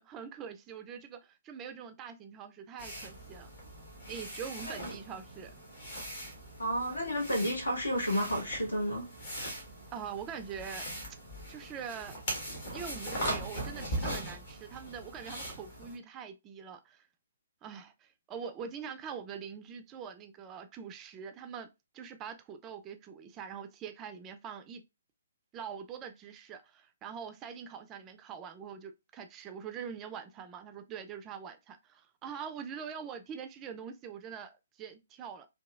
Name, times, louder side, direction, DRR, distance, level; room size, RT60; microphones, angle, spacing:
voice 1, 0.0-3.5 4.1-5.5 9.9-10.9 11.5-12.2 12.7-17.1 17.6-21.7 21.9-24.8 25.5-34.5 34.8-35.5, right 7 dB, 20° right, 0.3 m, -43 dB
sound 1, 2.8-16.0, right 1 dB, 45° left, 1.4 m, -40 dB
voice 2, 6.6-9.1, equal, 80° left, 1.3 m, -31 dB
2.9 x 2.6 x 2.3 m
figure-of-eight pair, 130°, 0 cm